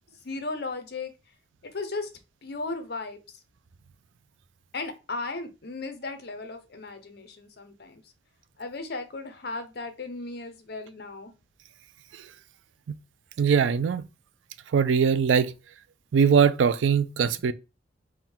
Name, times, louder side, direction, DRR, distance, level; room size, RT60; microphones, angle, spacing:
voice 1, 0.2-1.1 1.6-2.1 2.4-3.4 4.7-8.0 8.6-11.3 17.3-17.4, left 3 dB, 55° left, 0.7 m, -36 dB
voice 2, 13.4-14.0 14.7-15.5 16.1-17.5, right 6 dB, 85° right, 0.4 m, -21 dB
3.6 x 2.2 x 4.3 m
head